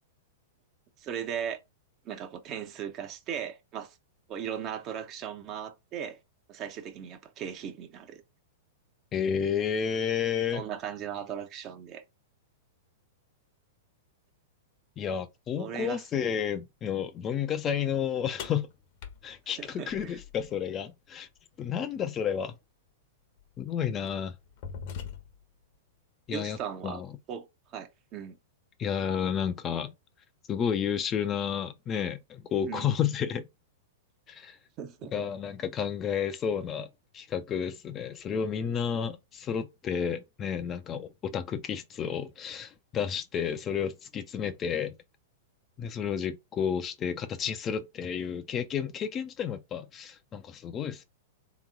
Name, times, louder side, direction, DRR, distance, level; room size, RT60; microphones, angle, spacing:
voice 1, 1.0-1.6 2.0-4.0 4.3-6.2 6.5-8.2 10.5-12.0 15.6-16.0 19.6-20.2 26.3-27.0 27.3-27.5 27.7-28.4 32.6-32.9 34.8-35.1, right 8 dB, 35° right, 0.9 m, -37 dB
voice 2, 9.1-10.6 15.0-18.7 19.2-21.3 21.6-22.5 23.6-24.3 26.3-26.6 26.8-27.1 28.8-29.9 30.5-33.5 34.3-34.6 35.1-36.9 37.1-44.9 45.8-51.0, left 8 dB, 30° left, 0.6 m, -31 dB
sound 1, 18.4-20.6 22.4-22.5 23.4-23.6 24.1-25.6, left 7 dB, 55° left, 1.0 m, -42 dB
3.6 x 3.0 x 3.7 m
hypercardioid pair, 110°, 0 cm